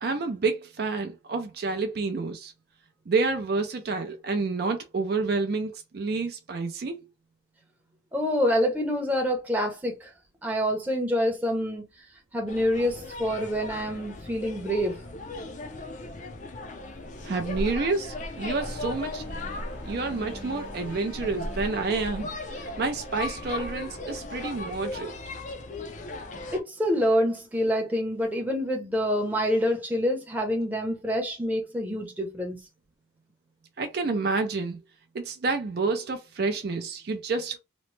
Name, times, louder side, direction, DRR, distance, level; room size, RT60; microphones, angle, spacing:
voice 1, 0.0-2.5 3.1-7.1 17.2-19.4 19.9-25.1 33.8-34.8 35.1-37.6, right 3 dB, 50° right, 0.4 m, -29 dB
voice 2, 8.1-10.1 10.4-11.8 12.3-15.0 26.5-32.6, equal, 10° right, 0.7 m, -26 dB
sound 1, 12.5-26.6, left 2 dB, 40° left, 0.4 m, -37 dB
sound 2, 18.6-25.5, equal, 65° left, 0.8 m, -45 dB
3.0 x 2.0 x 3.1 m
head